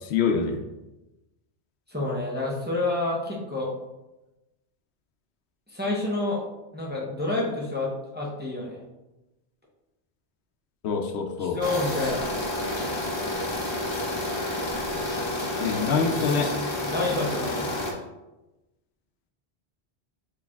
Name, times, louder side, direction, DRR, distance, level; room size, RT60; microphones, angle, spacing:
voice 1, 0.1-0.6 10.8-11.6 15.6-16.6, left 5 dB, 80° left, 5 dB, 0.8 m, -25 dB
voice 2, 1.9-3.7 5.7-6.4 6.7-8.8 11.4-12.2 15.5-16.0 16.8-17.7, left 2 dB, 10° right, -4 dB, 0.6 m, -29 dB
sound 1, 11.6-17.9, left 1 dB, 30° left, 0.7 m, -29 dB
6.2 x 3.1 x 2.3 m, 1.0 s
omnidirectional pair, 1.1 m